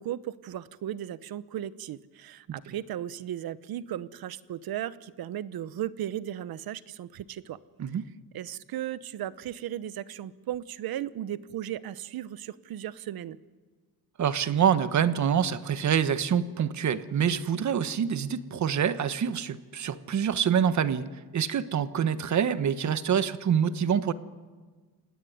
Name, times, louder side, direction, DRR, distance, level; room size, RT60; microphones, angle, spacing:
voice 1, 0.0-7.6 8.3-13.4, right 11 dB, 70° right, 16 dB, 1.0 m, -36 dB
voice 2, 14.2-21.1 21.3-24.1, right 8 dB, 45° right, 13 dB, 1.3 m, -26 dB
29.0 x 18.0 x 9.5 m, 1.4 s
cardioid pair, 135°, 38 cm